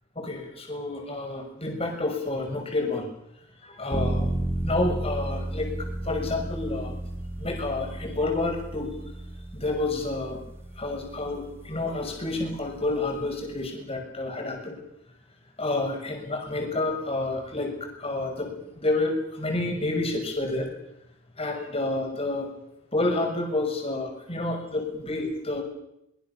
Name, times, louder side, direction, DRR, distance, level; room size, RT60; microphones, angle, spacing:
voice 1, 0.1-3.1 3.6-4.3 4.6-6.9 7.4-8.9 9.5-10.4 10.8-14.8 15.6-17.7 18.0-20.7 21.4-22.5 22.9-25.6, left 2 dB, 25° left, 2 dB, 6.4 m, -29 dB
sound 1, 3.9-13.7, right 1 dB, 10° right, 2.0 m, -33 dB
24.0 x 22.5 x 7.1 m, 0.82 s
head